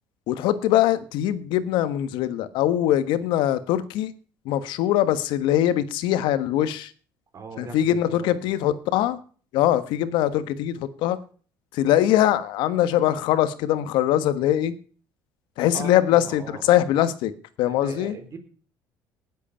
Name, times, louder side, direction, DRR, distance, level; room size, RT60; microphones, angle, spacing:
voice 1, 0.3-4.1 4.4-6.9 7.6-9.2 9.5-11.2 11.7-14.7 15.6-17.3 17.6-18.1, left 12 dB, 80° left, 13 dB, 1.4 m, -22 dB
voice 2, 7.3-8.5 15.7-16.7 17.7-18.4, right 4 dB, 40° right, 6 dB, 4.1 m, -39 dB
19.0 x 8.3 x 5.7 m, 0.42 s
cardioid pair, 105°, 8 cm